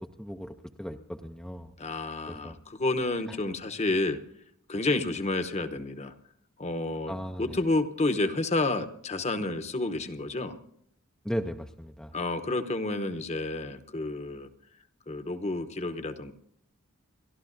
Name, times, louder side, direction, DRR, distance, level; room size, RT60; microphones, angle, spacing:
voice 1, 0.0-1.7 2.3-2.6 3.3-3.4 7.1-7.6 11.2-12.1, equal, 5° left, 4 dB, 0.5 m, -37 dB
voice 2, 1.8-4.2 4.7-6.1 6.6-10.6 12.1-14.5 15.1-16.3, left 2 dB, 30° left, 9 dB, 0.9 m, -30 dB
30.0 x 12.5 x 2.6 m, 0.70 s
head